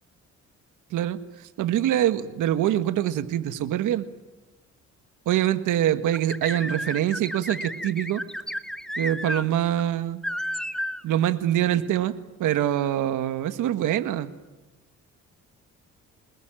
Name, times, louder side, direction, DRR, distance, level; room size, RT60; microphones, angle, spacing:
voice 1, 1.6-4.1 5.2-8.2 9.0-10.2 11.0-14.3, right 12 dB, 85° right, 11 dB, 1.7 m, -24 dB
sound 1, 6.1-9.4 9.8-9.9 10.2-11.0, equal, ahead, 1.4 m, -32 dB
28.5 x 20.5 x 9.1 m, 1.1 s
cardioid pair, 90°, 30 cm